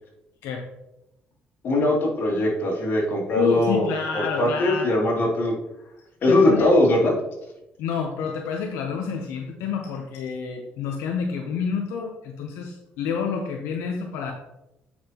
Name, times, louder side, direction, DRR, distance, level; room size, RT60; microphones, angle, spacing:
voice 1, 1.6-5.5 6.2-7.1, left 1 dB, 55° left, -2 dB, 2.5 m, -21 dB
voice 2, 3.3-4.9 6.3-6.7 7.8-14.3, left 6 dB, 90° left, 3 dB, 0.7 m, -28 dB
8.6 x 5.6 x 2.9 m, 0.92 s
cardioid pair, 90°, 4 cm